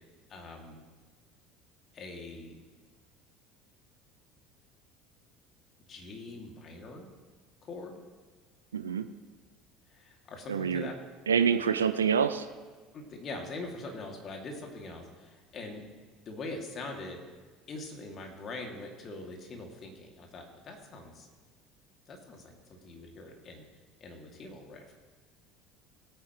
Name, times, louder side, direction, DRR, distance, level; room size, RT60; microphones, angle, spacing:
voice 1, 0.3-0.8 1.9-2.6 5.9-7.1 7.6-8.0 9.9-10.9 12.9-15.8 16.2-17.2 17.7-21.3 22.1-23.6 24.0-24.8, left 2 dB, 40° left, 2 dB, 2.6 m, -43 dB
voice 2, 8.7-9.1 10.5-10.9 11.3-12.5, right 7 dB, 85° right, 10 dB, 0.5 m, -26 dB
20.0 x 8.9 x 3.2 m, 1.5 s
hypercardioid pair, 70°, 0 cm